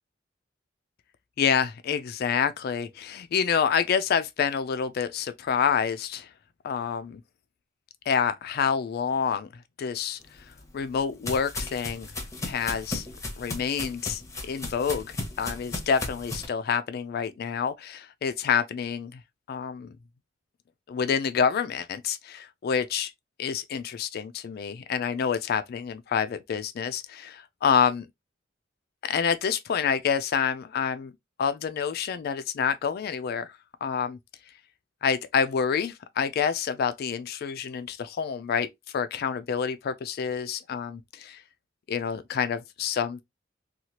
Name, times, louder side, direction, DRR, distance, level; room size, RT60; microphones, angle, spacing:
voice 1, 1.4-6.3 6.6-7.2 8.1-9.5 9.8-10.2 10.7-12.1 12.4-13.1 13.4-19.2 19.5-19.9 20.9-23.1 23.4-28.1 29.0-31.1 31.4-33.5 33.8-34.2 35.0-38.7 38.9-41.4 41.9-43.2, left 7 dB, 55° left, 0.3 m, -27 dB
sound 1, 10.3-16.5, left 2 dB, 15° left, 0.7 m, -36 dB
2.9 x 2.3 x 2.8 m
head